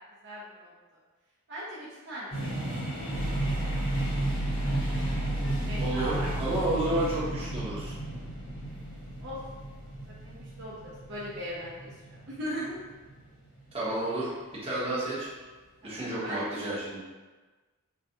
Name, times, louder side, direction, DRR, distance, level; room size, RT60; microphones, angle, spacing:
voice 1, 0.2-0.7 1.5-2.3 5.5-6.3 9.0-9.4 10.1-12.8 15.8-16.5, equal, 55° right, -7 dB, 0.8 m, -39 dB
sound 1, 2.3-14.1, right 2 dB, 55° left, 1.3 m, -35 dB
sound 2, 3.1-11.2, equal, 80° right, 0.5 m, -35 dB
voice 2, 5.8-8.0 13.7-14.3 14.6-15.3 15.8-17.0, right 1 dB, 25° right, -8 dB, 1.2 m, -31 dB
5.9 x 2.4 x 2.8 m, 1.3 s
head